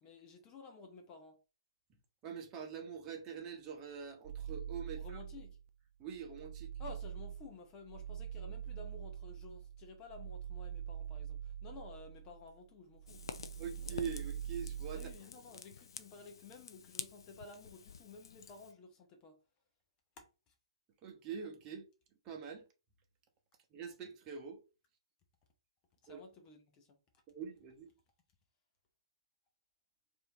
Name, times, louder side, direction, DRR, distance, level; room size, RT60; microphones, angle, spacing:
voice 1, 0.0-1.4 4.8-5.6 6.8-13.2 14.9-19.4 20.2-20.5 26.0-27.0, left 3 dB, 25° left, 0.9 m, -53 dB
voice 2, 2.2-5.2 6.0-6.7 13.6-15.0 21.0-21.8 22.2-22.6 23.7-24.6 26.1-26.2 27.3-27.9, right 6 dB, 25° right, 1.1 m, -44 dB
sound 1, 4.2-5.7 6.1-12.6 12.9-15.2, right 9 dB, 45° right, 0.3 m, -44 dB
Fire, 13.1-18.7, left 6 dB, 60° left, 0.4 m, -49 dB
4.8 x 2.8 x 3.0 m
figure-of-eight pair, 125°, 3 cm